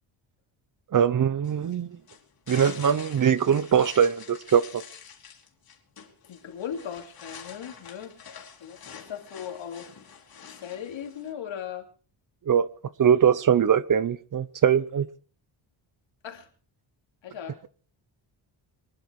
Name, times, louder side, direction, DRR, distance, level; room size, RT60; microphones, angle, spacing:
voice 1, 0.9-1.9 2.5-4.8 12.5-12.7 13.0-15.1, right 8 dB, 40° right, 0.8 m, -22 dB
sound 1, 1.4-11.3, left 7 dB, 50° left, 3.3 m, -47 dB
voice 2, 6.2-8.2 8.6-10.0 10.5-11.9 16.2-16.5 17.2-17.7, left 8 dB, 70° left, 3.1 m, -38 dB
24.5 x 11.0 x 4.8 m
wide cardioid pair, 160°, 48 cm